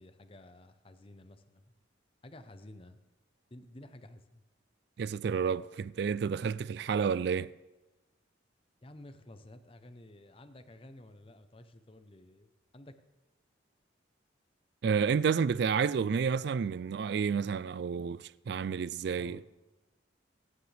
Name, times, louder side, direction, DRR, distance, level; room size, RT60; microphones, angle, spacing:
voice 1, 0.0-1.8 2.2-3.0 3.5-4.4 8.8-13.0 19.1-19.5, left 1 dB, 30° left, 0.7 m, -52 dB
voice 2, 5.0-7.5 14.8-19.4, right 6 dB, 55° right, 0.3 m, -30 dB
22.0 x 9.6 x 3.4 m
head